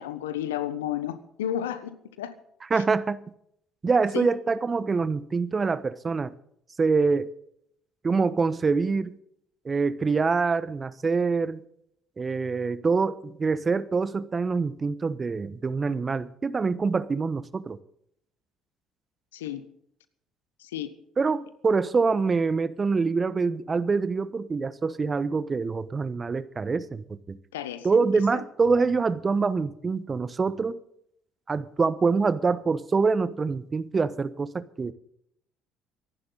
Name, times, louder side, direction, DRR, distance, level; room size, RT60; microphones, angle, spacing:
voice 1, 0.0-2.3 2.7-2.8 4.1-4.3 19.3-19.6 20.6-20.9 27.5-28.1 28.3-28.4, left 11 dB, 80° left, 1.2 m, -32 dB
voice 2, 2.7-3.2 3.8-6.3 6.8-7.3 8.0-9.1 9.6-11.6 12.2-17.8 21.2-27.4 27.8-30.8 31.5-34.9, right 4 dB, 35° right, 1.0 m, -25 dB
24.0 x 11.5 x 4.0 m
hypercardioid pair, 55°, 0 cm